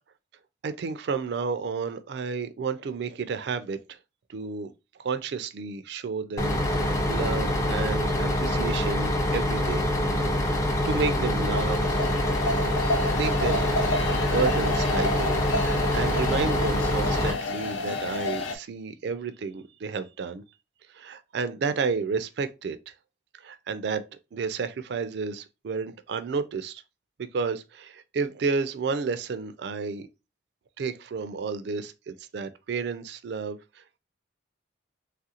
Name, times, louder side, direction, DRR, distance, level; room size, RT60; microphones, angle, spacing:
voice 1, 0.6-3.8 4.3-4.7 5.0-9.8 10.3-12.0 13.2-13.7 14.2-20.4 20.9-22.9 23.4-24.0 24.3-26.8 27.3-30.1 30.8-34.0, right 5 dB, 60° right, 0.3 m, -31 dB
Bus, 6.4-17.3, left 1 dB, 15° left, 0.4 m, -25 dB
sound 1, 11.0-18.6, left 2 dB, 85° left, 0.5 m, -30 dB
3.3 x 2.4 x 2.8 m
head